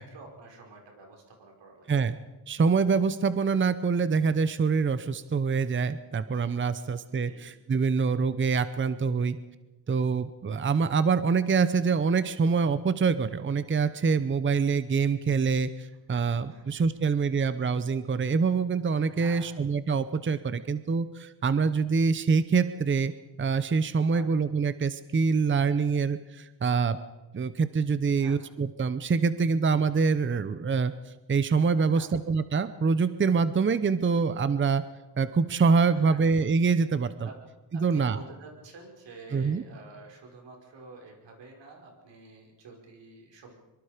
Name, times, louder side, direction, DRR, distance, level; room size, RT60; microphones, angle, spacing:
voice 1, 0.0-1.9 6.8-6.9 7.2-7.4 16.5-16.6 19.0-19.5 24.1-24.3 28.2-28.4 31.8-32.1 35.9-36.2 37.2-37.4 37.7-43.5, right 3 dB, 85° right, 1 dB, 5.3 m, -49 dB
voice 2, 2.5-9.4 9.9-23.1 23.4-27.0 27.3-30.9 31.3-34.8 35.2-37.1 37.7-38.2 39.3-39.6, right 5 dB, 30° right, 13 dB, 0.8 m, -25 dB
24.5 x 23.5 x 5.1 m, 1.1 s
cardioid pair, 100°, 42 cm